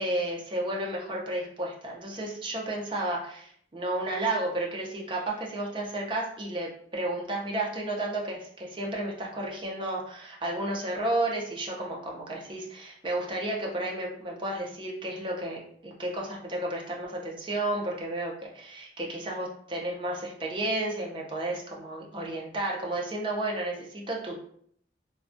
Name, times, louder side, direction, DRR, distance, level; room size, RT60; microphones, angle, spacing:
voice 1, 0.0-24.4, right 1 dB, 30° right, -2 dB, 0.5 m, -32 dB
2.2 x 2.1 x 2.5 m, 0.64 s
head